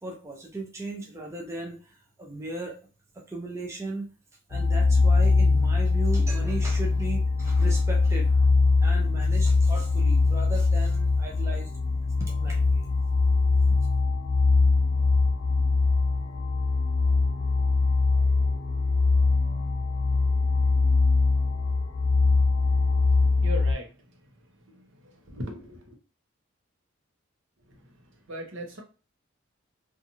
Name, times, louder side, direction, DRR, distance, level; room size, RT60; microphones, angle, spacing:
voice 1, 0.0-2.8 3.3-4.1 4.5-8.5 8.8-11.7 12.2-12.9, right 2 dB, 15° right, 0 dB, 0.4 m, -37 dB
sound 1, 4.5-23.7, left 3 dB, 50° left, 0.5 m, -22 dB
voice 2, 23.4-23.9 25.3-25.8 28.3-28.8, equal, 70° right, 2 dB, 0.8 m, -36 dB
2.7 x 2.4 x 2.6 m, 0.35 s
head